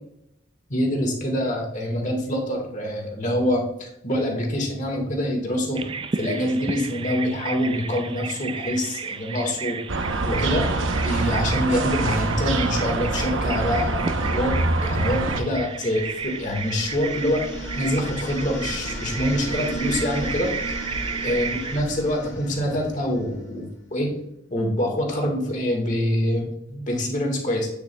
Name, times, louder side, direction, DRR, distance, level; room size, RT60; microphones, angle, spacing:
voice 1, 0.7-5.8 6.2-9.8 10.3-10.7 11.0-17.4 17.7-20.5 21.2-24.1 24.5-27.7, left 1 dB, 40° left, 2 dB, 1.6 m, -25 dB
Bird vocalization bird call bird song, 5.7-21.8, right 5 dB, 25° right, 0.3 m, -33 dB
sound 1, 9.9-15.4, right 2 dB, 90° right, 0.8 m, -25 dB
sound 2, 15.6-23.5, equal, 80° left, 1.8 m, -35 dB
8.5 x 7.0 x 2.2 m, 0.79 s
head